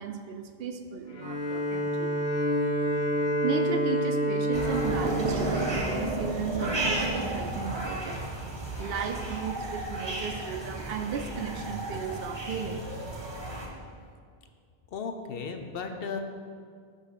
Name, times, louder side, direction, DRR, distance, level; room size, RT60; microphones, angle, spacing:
voice 1, 0.0-2.2 3.4-8.3 8.8-13.3, right 6 dB, 70° right, 7 dB, 0.7 m, -35 dB
Bowed string instrument, 1.1-6.3, equal, 35° left, 1.1 m, -28 dB
sound 1, 4.5-13.7, right 1 dB, 25° right, 0.9 m, -33 dB
voice 2, 14.9-16.2, left 5 dB, 70° left, 6 dB, 0.8 m, -35 dB
5.4 x 5.2 x 6.6 m, 2.1 s
omnidirectional pair, 1.0 m